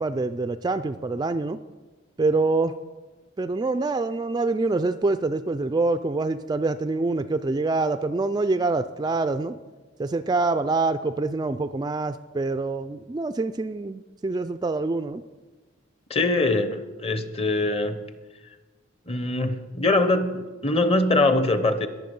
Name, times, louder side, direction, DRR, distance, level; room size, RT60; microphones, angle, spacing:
voice 1, 0.0-1.6 2.2-2.8 3.4-9.6 10.0-15.2, right 3 dB, 20° right, 11 dB, 0.3 m, -25 dB
voice 2, 16.1-18.0 19.1-21.9, left 2 dB, 30° left, 10 dB, 0.9 m, -23 dB
21.5 x 7.3 x 5.4 m, 1.3 s
head